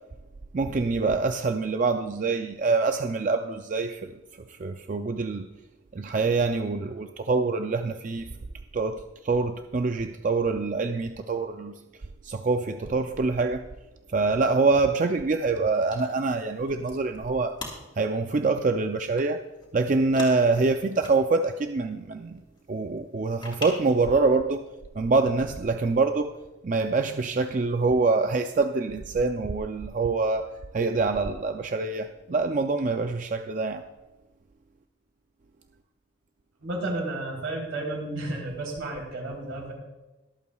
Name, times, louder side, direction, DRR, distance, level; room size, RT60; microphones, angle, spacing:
voice 1, 0.5-4.1 4.5-5.5 5.9-8.3 8.7-11.8 12.2-13.6 14.1-17.6 18.0-19.4 19.7-22.4 22.7-24.6 25.0-26.3 26.6-33.8, right 3 dB, 40° right, 6 dB, 0.4 m, -25 dB
sound 1, 15.9-24.1, left 3 dB, 25° left, 2.5 m, -45 dB
voice 2, 36.6-39.7, right 2 dB, 80° right, 0 dB, 3.5 m, -32 dB
22.5 x 8.3 x 2.3 m, 1.1 s
head